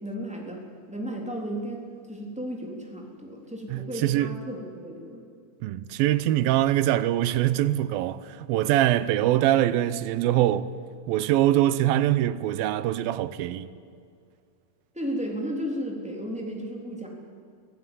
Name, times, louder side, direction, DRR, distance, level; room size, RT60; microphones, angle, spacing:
voice 1, 0.0-0.6 0.9-1.8 2.1-5.2 14.9-17.1, equal, ahead, 3.2 m, -34 dB
voice 2, 3.7-4.3 5.6-10.7 11.1-13.7, right 13 dB, 85° right, 2.5 m, -23 dB
25.0 x 15.0 x 9.2 m
omnidirectional pair, 4.2 m